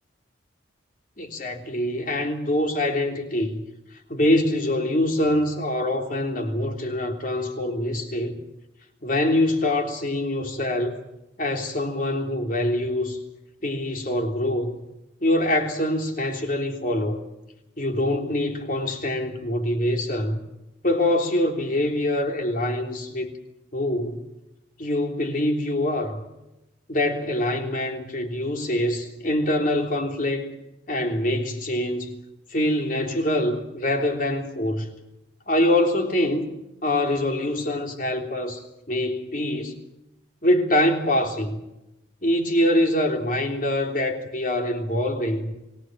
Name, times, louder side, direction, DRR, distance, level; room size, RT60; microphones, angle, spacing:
voice 1, 1.2-3.6 4.1-8.4 9.0-10.9 11.4-13.2 13.6-14.8 15.2-17.2 17.8-20.4 20.8-23.3 23.7-24.2 24.8-26.2 26.9-30.6 30.9-32.2 32.5-34.9 35.5-36.5 36.8-38.6 38.9-39.8 40.4-41.6 42.2-45.5, left 1 dB, 45° left, 3.4 m, -24 dB
28.5 x 18.5 x 7.4 m
head